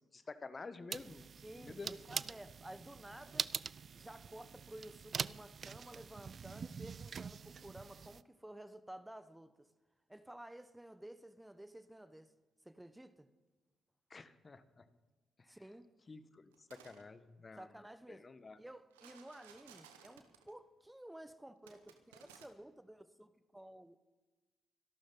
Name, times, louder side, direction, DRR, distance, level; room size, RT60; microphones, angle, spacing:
voice 1, 0.1-1.2 1.5-1.9 14.1-14.8 15.4-15.6 16.1-17.7 18.1-18.6, left 3 dB, 40° left, 12 dB, 1.2 m, -50 dB
sound 1, 0.9-8.2, right 6 dB, 50° right, 0.4 m, -44 dB
voice 2, 1.4-3.5 3.9-9.7 10.1-12.3 12.6-13.3 15.5-15.9 17.6-18.3 18.6-24.0, right 1 dB, 10° right, 11 dB, 1.1 m, -53 dB
sound 2, 16.5-17.0 18.9-20.5 21.7-22.5, right 8 dB, 85° right, 1.2 m, -59 dB
25.0 x 12.0 x 3.9 m, 1.2 s
hypercardioid pair, 40°, 0 cm